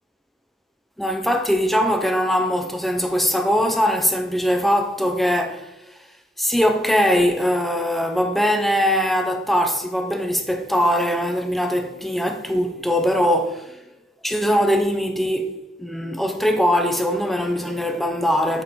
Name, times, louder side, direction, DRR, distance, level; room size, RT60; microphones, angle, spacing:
voice 1, 1.0-5.7 6.4-13.8 14.2-18.6, equal, ahead, 0.6 m, -21 dB
7.4 x 7.3 x 4.7 m
head